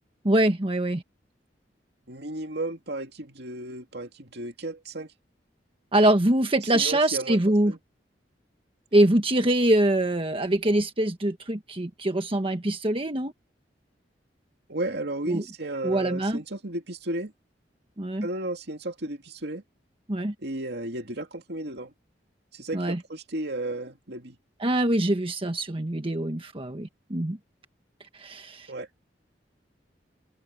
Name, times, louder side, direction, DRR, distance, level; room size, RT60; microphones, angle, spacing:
voice 1, 0.2-1.0 5.9-7.7 8.9-13.3 15.3-15.4 15.8-16.4 18.0-18.3 20.1-20.3 22.7-23.0 24.6-27.4 28.1-28.7, right 1 dB, 30° right, 1.3 m, -24 dB
voice 2, 2.1-5.1 6.6-7.4 7.7-7.8 14.7-17.3 18.2-19.6 20.4-21.9 22.5-24.4 28.7-28.9, right 1 dB, 65° right, 2.5 m, -34 dB
head